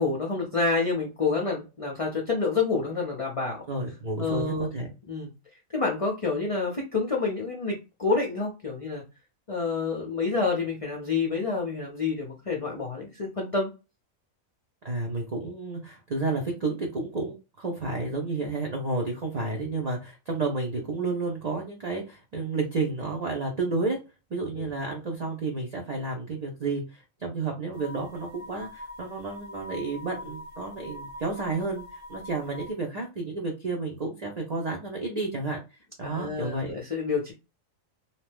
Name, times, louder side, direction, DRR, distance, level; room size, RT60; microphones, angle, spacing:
voice 1, 0.0-3.6 4.2-4.7 5.1-5.3 5.7-9.0 9.5-13.7 19.6-19.8 24.5-24.8 36.0-37.3, left 4 dB, 35° left, -1 dB, 0.5 m, -28 dB
voice 2, 3.7-4.9 14.8-24.0 24.3-35.6 36.0-36.7, right 3 dB, 45° right, 0 dB, 0.6 m, -31 dB
sound 1, 27.7-32.7, left 1 dB, 65° right, 0.9 m, -43 dB
2.8 x 2.1 x 3.3 m, 0.29 s
omnidirectional pair, 1.4 m